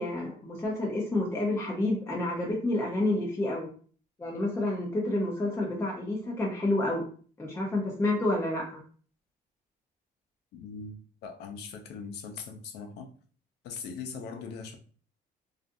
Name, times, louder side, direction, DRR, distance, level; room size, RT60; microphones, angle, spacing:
voice 1, 0.0-3.7 4.2-7.0 7.4-8.8, left 2 dB, 15° left, 0.7 m, -29 dB
voice 2, 10.5-13.1 13.6-14.8, left 5 dB, 75° left, 0.5 m, -40 dB
2.5 x 2.4 x 2.5 m
cardioid pair, 110°, 17 cm